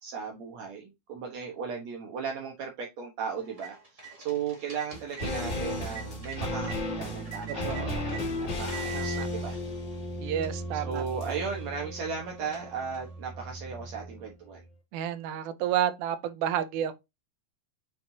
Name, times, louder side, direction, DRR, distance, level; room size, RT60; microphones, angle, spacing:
voice 1, 0.0-9.6 10.7-14.6, right 6 dB, 65° right, 2.4 m, -36 dB
sound 1, 3.3-6.8 7.3-8.2 8.7-9.3 9.9-10.0 10.4-13.2, right 7 dB, 15° right, 1.5 m, -45 dB
sound 2, 4.9-14.3 14.5-14.6, left 1 dB, 40° left, 3.1 m, -35 dB
voice 2, 7.6-8.0 8.9-9.3 10.2-11.4 14.9-16.9, right 10 dB, 90° right, 2.2 m, -31 dB
7.4 x 5.1 x 2.7 m
omnidirectional pair, 3.4 m